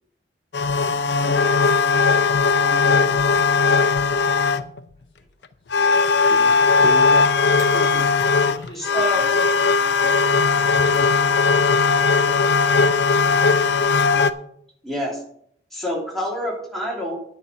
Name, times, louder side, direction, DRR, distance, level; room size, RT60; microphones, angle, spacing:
sound 1, 0.5-4.8 5.7-14.3, left 4 dB, 80° left, 0.6 m, -18 dB
voice 1, 1.1-1.8 2.6-3.3 4.0-4.2 5.1-5.2 8.4-14.2, equal, 30° left, 0 dB, 3.6 m, -44 dB
voice 2, 6.1-8.2 8.4-8.5 10.4-10.5, right 1 dB, 40° right, 12 dB, 0.5 m, -34 dB
sound 2, 7.4-13.6, right 2 dB, 20° right, 4.0 m, -45 dB
voice 3, 8.7-9.3 14.8-15.2 15.7-17.2, equal, ahead, -4 dB, 3.0 m, -27 dB
9.9 x 5.8 x 7.1 m, 0.68 s
head